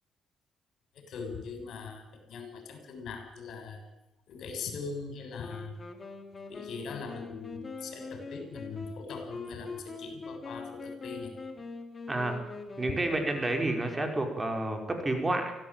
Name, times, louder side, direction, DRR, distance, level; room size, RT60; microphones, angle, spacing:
voice 1, 1.1-3.8 4.3-5.7 6.5-11.3, left 5 dB, 70° left, 6 dB, 7.0 m, -41 dB
Wind instrument woodwind instrument, 5.4-14.4, left 3 dB, 30° left, 4.1 m, -43 dB
voice 2, 12.8-15.6, right 2 dB, 20° right, 5 dB, 5.1 m, -30 dB
25.0 x 17.0 x 9.0 m, 0.91 s
cardioid pair, 90°, 0 cm